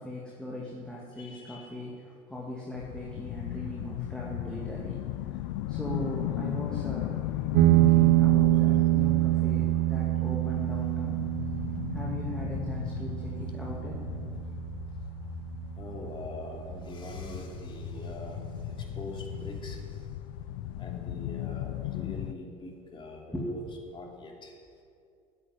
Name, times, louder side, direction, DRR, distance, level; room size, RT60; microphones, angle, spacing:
voice 1, 0.0-5.4 5.7-7.2 7.7-11.2 11.9-14.0 23.3-23.8, equal, 5° left, -4 dB, 2.4 m, -39 dB
voice 2, 1.2-1.7 15.8-20.0 20.8-23.6 23.9-24.6, left 2 dB, 30° left, 0 dB, 3.0 m, -43 dB
sound 1, 2.8-22.3, left 13 dB, 80° left, 0.5 m, -37 dB
sound 2, 7.5-16.6, right 18 dB, 70° right, 0.5 m, -26 dB
8.9 x 8.4 x 9.5 m, 2.3 s
supercardioid pair, 95°, 16 cm